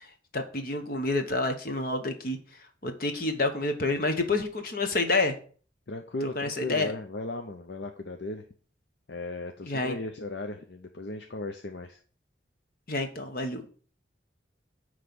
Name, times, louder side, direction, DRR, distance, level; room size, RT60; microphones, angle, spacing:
voice 1, 0.0-2.4 2.8-5.4 6.4-6.9 9.6-9.9 12.9-13.6, left 2 dB, 50° left, 6 dB, 1.1 m, -28 dB
voice 2, 5.9-8.4 9.1-12.0, left 2 dB, 65° left, 5 dB, 0.7 m, -36 dB
9.7 x 3.3 x 6.8 m, 0.42 s
head